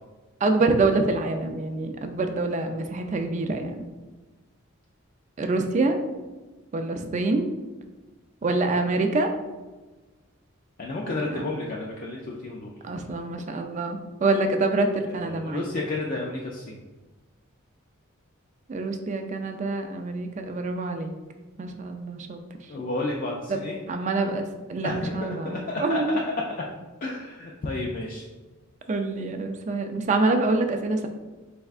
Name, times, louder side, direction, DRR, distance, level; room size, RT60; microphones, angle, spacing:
voice 1, 0.4-3.8 5.4-6.0 6.7-7.5 8.4-9.3 11.3-11.4 12.8-15.6 18.7-21.1 21.6-22.4 23.5-23.6 23.9-26.0 28.9-31.1, right 3 dB, 35° right, 6 dB, 0.3 m, -26 dB
voice 2, 10.8-12.7 15.2-16.8 22.7-23.8 24.8-26.3 27.0-28.3, left 2 dB, 40° left, -2 dB, 0.3 m, -31 dB
4.3 x 3.4 x 2.4 m, 1.2 s
head